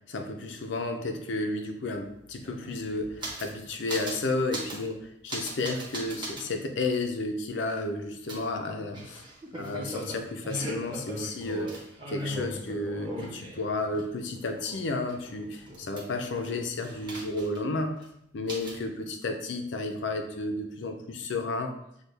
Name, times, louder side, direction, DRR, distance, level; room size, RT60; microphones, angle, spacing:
voice 1, 0.0-9.2 9.5-11.7 12.1-18.0 18.3-21.7, left 2 dB, 80° left, 5 dB, 0.6 m, -32 dB
sound 1, 1.9-2.0 2.2-3.6 3.9-4.2 4.5-4.9 5.3-6.5 6.9-7.0 8.3-14.0 14.4-16.4 16.8-17.7 18.0-18.1 18.5-18.8, right 1 dB, 25° right, 1.0 m, -39 dB
6.3 x 2.3 x 3.3 m, 0.77 s
head